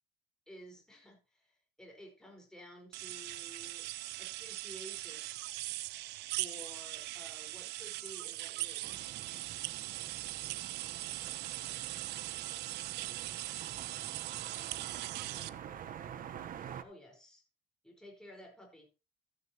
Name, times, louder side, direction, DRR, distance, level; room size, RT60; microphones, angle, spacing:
voice 1, 0.5-3.9 4.2-5.3 6.4-9.1 16.7-17.4 17.8-18.9, equal, 5° left, 1 dB, 4.8 m, -53 dB
sound 1, 2.9-15.5, right 17 dB, 85° right, 0.6 m, -40 dB
sound 2, 8.8-16.8, right 9 dB, 55° right, 1.1 m, -47 dB
voice 2, 11.8-12.6 13.1-16.2, left 7 dB, 65° left, 2 dB, 3.2 m, -67 dB
14.5 x 9.7 x 3.0 m, 0.29 s
cardioid pair, 110°, 17 cm